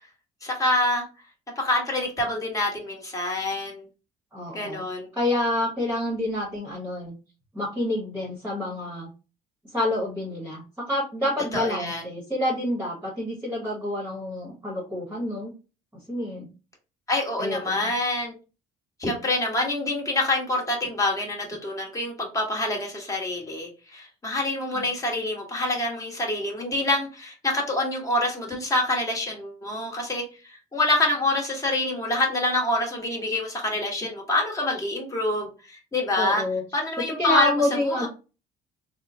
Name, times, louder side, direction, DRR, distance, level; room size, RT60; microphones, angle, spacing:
voice 1, 0.4-1.0 1.6-3.8 4.5-5.1 11.5-12.0 17.1-18.3 19.0-36.4 36.7-37.5 38.0-38.1, left 2 dB, 20° left, 1.2 m, -26 dB
voice 2, 4.3-4.8 5.1-7.1 7.5-9.1 9.7-15.5 16.1-16.5 17.4-17.9 24.7-24.9 36.2-36.6 37.2-38.1, left 1 dB, 10° right, 1.0 m, -28 dB
3.6 x 2.1 x 2.6 m
cardioid pair, 110°, 17 cm